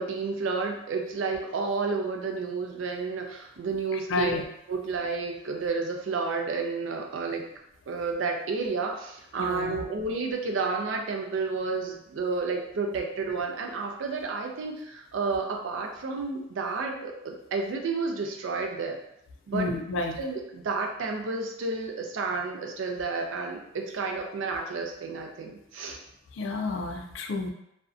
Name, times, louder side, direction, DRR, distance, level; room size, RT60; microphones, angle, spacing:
voice 1, 0.0-4.4 4.7-7.5 7.9-19.0 19.5-19.7 20.2-26.0, right 4 dB, 70° right, 2 dB, 0.4 m, -31 dB
voice 2, 3.9-4.4 9.4-9.8 19.5-20.2 26.3-27.5, left 2 dB, 70° left, 4 dB, 0.3 m, -30 dB
2.5 x 2.1 x 2.4 m, 0.81 s
head